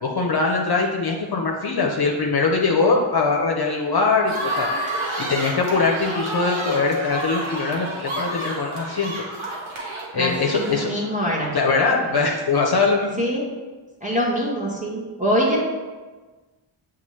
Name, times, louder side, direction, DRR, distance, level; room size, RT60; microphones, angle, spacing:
voice 1, 0.0-4.7 5.2-9.1 10.1-10.9 11.5-13.2, left 4 dB, 50° left, 0 dB, 0.6 m, -22 dB
sound 1, 4.2-11.2, right 1 dB, 70° right, 1.2 m, -30 dB
voice 2, 10.2-11.6 12.0-12.1 13.2-13.4 14.0-15.6, equal, 15° right, -5 dB, 0.9 m, -24 dB
6.9 x 2.4 x 3.1 m, 1.3 s
wide cardioid pair, 60°, 49 cm